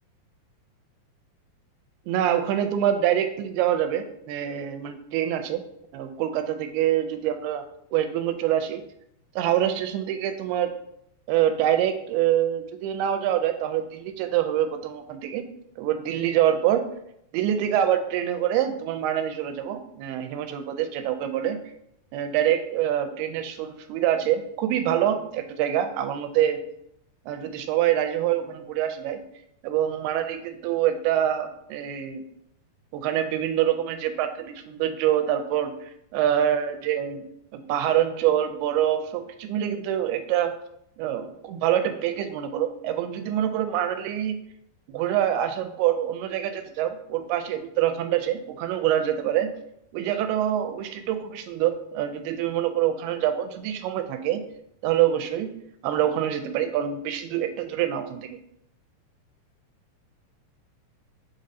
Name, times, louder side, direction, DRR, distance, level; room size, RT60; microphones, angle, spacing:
voice 1, 2.1-5.6 5.9-7.6 7.9-8.8 9.4-10.7 11.3-15.5 15.8-16.8 17.3-21.6 22.1-26.6 27.3-29.2 29.6-32.2 32.9-37.2 37.5-40.5 41.0-44.4 44.9-49.5 49.9-54.5 54.8-55.5 55.8-58.4, right 11 dB, 85° right, 8 dB, 2.5 m, -25 dB
7.1 x 5.1 x 2.7 m, 0.76 s
omnidirectional pair, 4.5 m